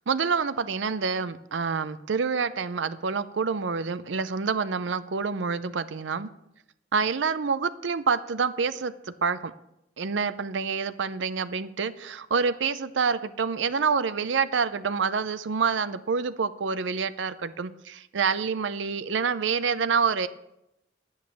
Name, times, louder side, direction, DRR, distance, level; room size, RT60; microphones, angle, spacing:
voice 1, 0.1-6.3 6.9-8.9 9.2-9.5 10.0-20.3, right 5 dB, 75° right, 13 dB, 0.6 m, -27 dB
10.5 x 8.8 x 7.3 m, 0.85 s
head